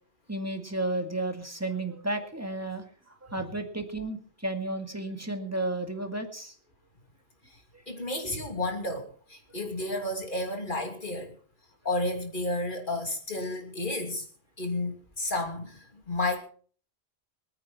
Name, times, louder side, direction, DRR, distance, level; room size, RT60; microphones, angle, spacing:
voice 1, 0.3-6.6, right 2 dB, 15° right, 5 dB, 2.1 m, -33 dB
voice 2, 7.9-11.3 11.8-14.2 14.6-16.4, left 2 dB, 50° left, 3 dB, 3.0 m, -32 dB
25.5 x 9.3 x 4.2 m, 0.43 s
omnidirectional pair, 1.1 m